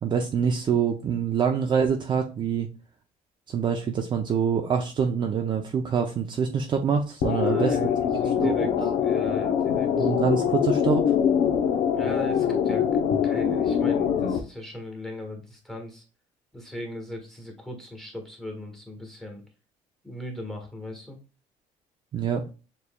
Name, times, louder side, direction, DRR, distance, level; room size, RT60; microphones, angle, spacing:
voice 1, 0.0-2.7 3.5-7.8 8.4-8.9 10.0-11.2 22.1-22.4, right 6 dB, 30° right, 4 dB, 0.5 m, -25 dB
sound 1, 7.2-14.4, left 8 dB, 60° left, 0.7 m, -23 dB
voice 2, 7.2-10.1 11.9-16.0 16.5-19.4 20.0-21.2, equal, 5° left, 2 dB, 1.4 m, -38 dB
6.9 x 3.1 x 2.2 m, 0.33 s
cardioid pair, 165°, 14 cm